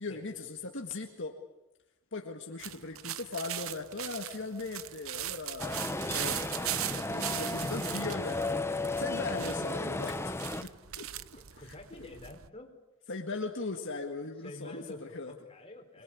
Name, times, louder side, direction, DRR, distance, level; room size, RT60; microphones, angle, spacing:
voice 1, 0.0-1.4 2.1-5.8 6.1-6.4 6.8-8.7 9.0-11.1 11.5-11.7 13.1-15.3, left 3 dB, 60° left, 2 dB, 1.8 m, -39 dB
sound 1, 2.6-12.5, right 12 dB, 70° right, 0.9 m, -39 dB
sound 2, 5.6-10.6, left 2 dB, 10° left, 0.9 m, -34 dB
voice 2, 11.3-12.7 14.4-16.0, left 2 dB, 25° left, 3 dB, 4.0 m, -48 dB
26.5 x 21.5 x 8.6 m, 1.0 s
head